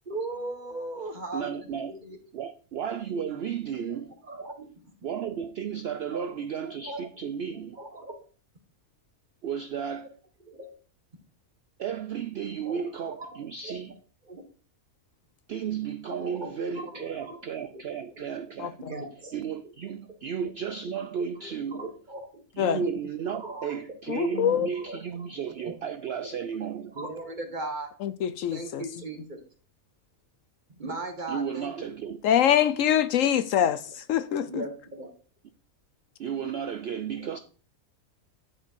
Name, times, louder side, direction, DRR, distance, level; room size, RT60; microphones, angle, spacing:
voice 1, 0.0-2.2 4.2-4.9 5.8-6.3 6.6-7.0 7.7-8.2 10.4-10.7 12.6-13.8 14.3-14.4 16.0-17.4 17.6-17.8 18.1-18.2 18.8-19.7 20.4-20.5 20.9-21.0 21.4-22.4 23.4-23.8 24.3-24.5 24.7-25.8 26.3-26.4 26.8-27.9 28.5-29.4 30.8-31.9 34.5-35.1 37.2-37.4, right 2 dB, 35° right, 1.6 m, -39 dB
voice 2, 1.3-1.9 2.3-4.1 5.0-7.8 9.4-10.1 11.8-13.9 15.5-18.8 19.3-21.8 22.6-26.9 31.3-32.2 36.2-37.4, right 7 dB, 60° right, 0.6 m, -33 dB
voice 3, 18.6-18.9 22.6-22.8 24.1-24.7 28.0-28.8 32.2-34.6, left 10 dB, 70° left, 0.9 m, -24 dB
10.0 x 4.5 x 4.6 m
omnidirectional pair, 1.5 m